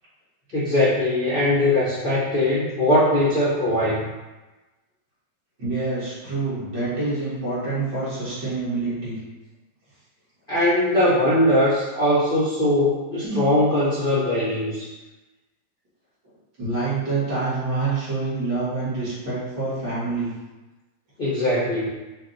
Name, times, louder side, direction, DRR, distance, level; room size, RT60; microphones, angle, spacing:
voice 1, 0.5-4.1 10.5-14.9 21.2-21.9, left 1 dB, 85° left, -9 dB, 0.4 m, -21 dB
voice 2, 5.6-9.2 10.6-10.7 13.2-13.4 16.6-20.3, right 3 dB, 55° right, -10 dB, 2.0 m, -26 dB
5.8 x 2.3 x 2.6 m, 1.1 s
omnidirectional pair, 2.3 m